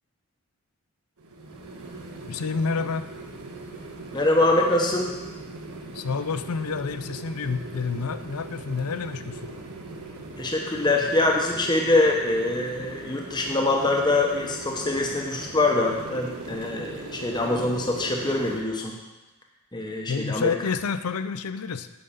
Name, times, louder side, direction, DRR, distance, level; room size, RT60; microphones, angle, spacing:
sound 1, 1.2-18.6, right 2 dB, 80° right, 1.3 m, -39 dB
voice 1, 2.3-3.1 5.9-9.4 20.1-21.9, left 5 dB, 85° left, 12 dB, 0.5 m, -29 dB
voice 2, 4.1-5.1 10.4-19.0 19.7-20.5, left 2 dB, 20° left, 0 dB, 0.9 m, -24 dB
8.8 x 5.5 x 6.9 m, 1.1 s
head